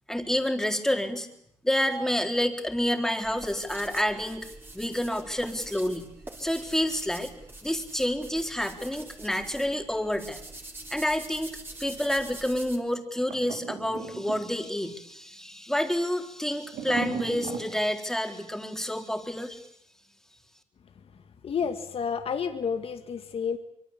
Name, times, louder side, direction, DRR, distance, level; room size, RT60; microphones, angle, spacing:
voice 1, 0.1-1.3 1.6-4.5 4.7-6.1 6.4-7.3 7.6-10.4 10.9-19.6, left 1 dB, 5° left, 5 dB, 4.2 m, -29 dB
sound 1, 3.2-12.8, right 2 dB, 15° right, 4.8 m, -45 dB
sound 2, 13.3-14.8 16.7-17.7, right 7 dB, 75° right, 5.0 m, -36 dB
voice 2, 21.4-23.6, left 6 dB, 45° left, 7 dB, 2.1 m, -30 dB
25.0 x 23.5 x 8.7 m, 0.74 s
cardioid pair, 90°, 13 cm